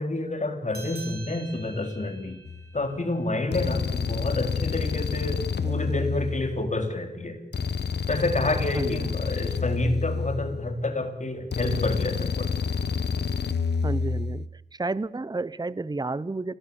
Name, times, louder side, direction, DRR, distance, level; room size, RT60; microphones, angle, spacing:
voice 1, 0.0-2.4 2.7-7.4 8.1-12.5, left 2 dB, 45° left, 6 dB, 3.7 m, -28 dB
sound 1, 0.7-5.6, right 4 dB, 70° right, 7.8 m, -48 dB
sound 2, 2.5-2.7 3.5-6.8 7.5-10.8 11.5-14.5, left 5 dB, 80° left, 1.2 m, -29 dB
voice 2, 5.6-6.0 8.7-9.1 13.8-16.5, right 3 dB, 25° right, 19 dB, 0.7 m, -32 dB
26.5 x 18.5 x 7.1 m, 0.90 s
wide cardioid pair, 70°, 17 cm